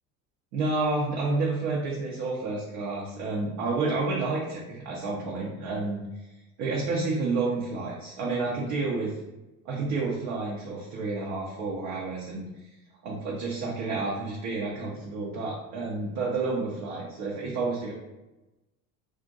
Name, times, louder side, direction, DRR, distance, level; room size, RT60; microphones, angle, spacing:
voice 1, 0.5-6.0 6.6-9.2 9.6-12.5 13.0-17.9, right 3 dB, 60° right, -4 dB, 0.8 m, -30 dB
2.5 x 2.1 x 3.9 m, 1.0 s
hypercardioid pair, 65°, 42 cm